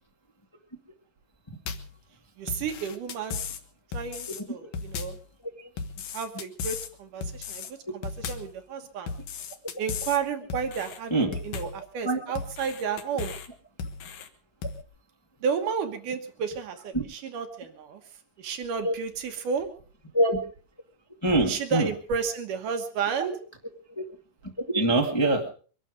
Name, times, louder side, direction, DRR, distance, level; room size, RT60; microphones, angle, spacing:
sound 1, 1.7-2.0 2.5-3.6 3.9-4.4 4.7-5.3 5.8-6.9 7.2-7.7 8.0-8.6 9.1-10.2 10.5-11.0 11.3-11.8 12.4-13.5 13.8-14.3 14.6-14.8, left 5 dB, 80° left, 3.1 m, -36 dB
voice 1, 2.4-3.4 3.9-5.2 6.1-9.1 9.8-13.4 15.4-18.0 18.4-19.7 21.4-23.3, right 6 dB, 80° right, 7 dB, 2.9 m, -32 dB
voice 2, 21.2-21.9 23.9-24.0 24.6-25.5, right 1 dB, 10° left, 1 dB, 1.6 m, -24 dB
23.5 x 12.0 x 5.1 m, 0.41 s
omnidirectional pair, 3.7 m